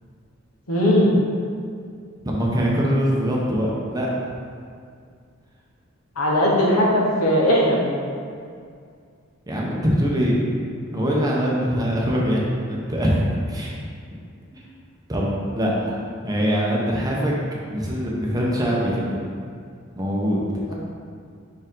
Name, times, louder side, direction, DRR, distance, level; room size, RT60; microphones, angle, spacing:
voice 1, 0.7-1.1 6.2-7.9 20.7-20.8, equal, 90° left, -3 dB, 1.3 m, -18 dB
voice 2, 2.2-4.1 9.5-10.4 10.9-13.7 14.5-14.6 15.1-16.0 16.2-17.3 17.7-19.1 19.9-20.4, equal, 15° right, -4 dB, 0.9 m, -23 dB
5.1 x 5.1 x 3.8 m, 2.2 s
head